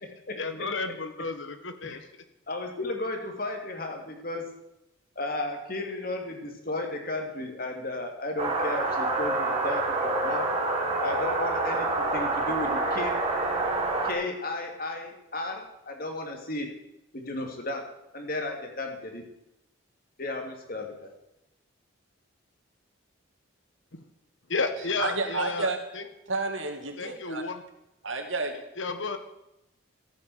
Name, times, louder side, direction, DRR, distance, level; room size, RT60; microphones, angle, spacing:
voice 1, 0.4-2.2 23.9-24.1 24.5-26.1 27.0-27.6 28.8-29.2, left 3 dB, 70° left, 8 dB, 1.5 m, -32 dB
voice 2, 2.5-4.4 5.2-10.4 11.0-13.2 14.0-16.7 17.1-17.8 18.1-19.2 20.2-21.1, left 2 dB, 45° left, 3 dB, 2.8 m, -34 dB
sound 1, 8.4-14.1, right 2 dB, 30° right, 2.5 m, -27 dB
voice 3, 25.0-25.8 26.3-27.4 28.0-28.6, right 3 dB, 75° right, 5 dB, 2.3 m, -30 dB
14.5 x 8.8 x 8.0 m, 0.87 s
head